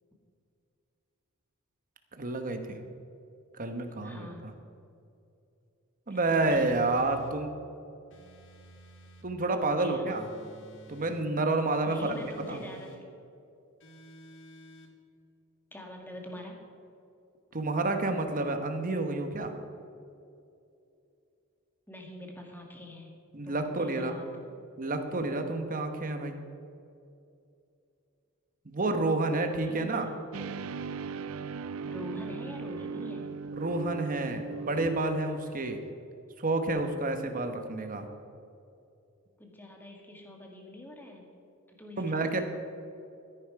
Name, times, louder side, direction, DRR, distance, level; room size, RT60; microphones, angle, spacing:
voice 1, 2.2-2.8 3.5-4.5 6.1-7.5 9.2-10.3 10.9-12.1 12.5-12.6 17.5-19.6 23.3-24.3 24.8-26.3 28.6-30.0 33.6-35.8 36.4-38.1 42.0-42.4, right 2 dB, 40° right, 6 dB, 1.1 m, -29 dB
voice 2, 4.0-4.5 6.1-6.9 9.8-10.1 11.8-13.0 15.7-16.7 21.9-23.1 23.4-24.5 29.7-30.1 31.9-33.3 39.4-41.2 41.7-42.4, left 1 dB, 10° left, 1 dB, 1.7 m, -44 dB
sound 1, 6.4-7.4 8.1-9.3 10.1-11.3 11.9-13.0 13.8-14.9, equal, 60° left, 1.5 m, -52 dB
sound 2, 30.3-35.3, right 5 dB, 70° right, 0.4 m, -38 dB
13.5 x 10.5 x 4.8 m, 2.6 s
head